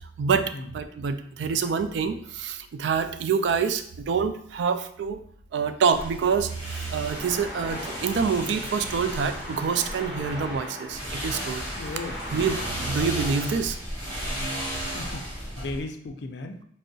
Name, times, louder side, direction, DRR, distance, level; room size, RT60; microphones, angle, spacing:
voice 1, 0.7-5.2 5.5-6.5 6.9-11.6 12.3-12.6 12.9-13.8, right 6 dB, 80° right, 9 dB, 0.3 m, -26 dB
sound 1, 5.9-10.6 10.9-15.8, equal, 30° right, 1.5 m, -35 dB
Traffic noise roadway noise, 7.1-13.6, equal, 5° right, 0.8 m, -39 dB
voice 2, 11.8-12.2 14.7-16.6, left 2 dB, 75° left, 6 dB, 0.4 m, -36 dB
4.5 x 2.0 x 2.6 m, 0.63 s
head